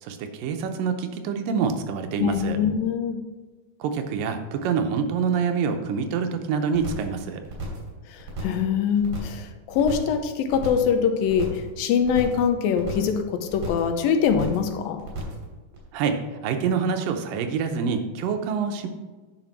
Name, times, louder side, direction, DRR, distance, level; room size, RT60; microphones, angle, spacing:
voice 1, 0.0-2.6 3.8-7.4 15.9-18.9, right 6 dB, 75° right, 6 dB, 2.4 m, -26 dB
voice 2, 2.2-3.2 8.1-15.0, left 7 dB, 80° left, 6 dB, 2.5 m, -23 dB
sound 1, 6.7-7.1 7.4-7.9 8.2-8.7 9.0-9.4 9.7-10.2 10.5-10.9 11.2-11.7 12.0-12.5 12.7-13.2 13.5-13.9 14.2-14.7 15.0-15.4 15.7-15.8, right 3 dB, 45° right, 3.7 m, -34 dB
9.3 x 5.4 x 6.0 m, 1.3 s
omnidirectional pair, 4.1 m